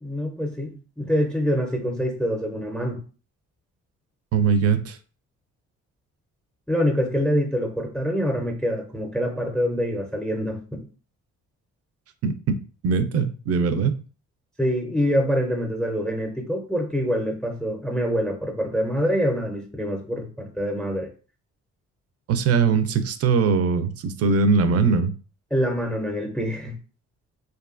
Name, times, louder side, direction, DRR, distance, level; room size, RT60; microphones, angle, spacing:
voice 1, 0.0-3.0 6.7-10.8 14.6-21.1 25.5-26.7, equal, 5° left, 0.5 m, -25 dB
voice 2, 4.3-5.0 12.2-12.3 12.8-13.9 22.3-25.1, right 5 dB, 55° right, 0.4 m, -21 dB
2.6 x 2.3 x 2.4 m
cardioid pair, 90°, 30 cm